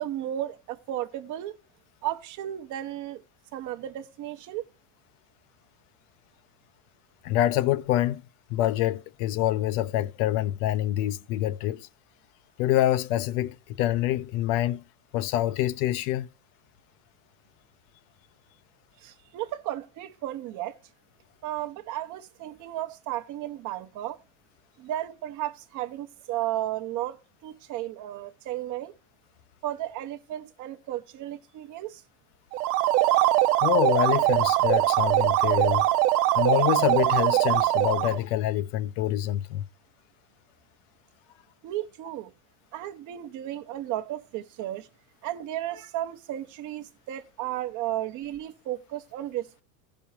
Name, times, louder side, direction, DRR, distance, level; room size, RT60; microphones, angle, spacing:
voice 1, 0.0-1.5 2.0-3.2 3.5-4.6 19.0-20.8 21.4-24.2 24.8-27.2 27.4-28.9 29.6-32.0 41.6-42.3 42.7-44.9 45.2-49.6, right 13 dB, 40° right, 0.9 m, -34 dB
voice 2, 7.2-8.2 8.5-11.9 12.6-14.8 15.1-16.3 33.6-35.9 36.4-39.7, left 13 dB, 65° left, 0.8 m, -26 dB
sound 1, 32.5-38.2, right 15 dB, 85° right, 0.9 m, -22 dB
15.5 x 5.4 x 4.3 m
supercardioid pair, 150°, 47 cm